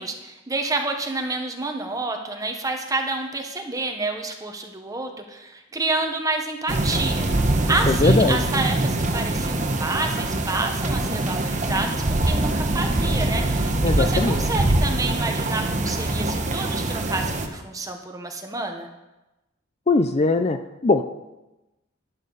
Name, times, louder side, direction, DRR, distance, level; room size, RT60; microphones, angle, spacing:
voice 1, 0.0-7.3 7.7-18.9, right 2 dB, 20° right, 3 dB, 1.2 m, -29 dB
sound 1, 6.7-17.5, right 2 dB, 40° right, 1.0 m, -23 dB
voice 2, 7.9-8.4 13.8-14.4 19.9-21.1, left 3 dB, 35° left, 9 dB, 0.5 m, -21 dB
11.5 x 11.0 x 4.1 m, 1.0 s
head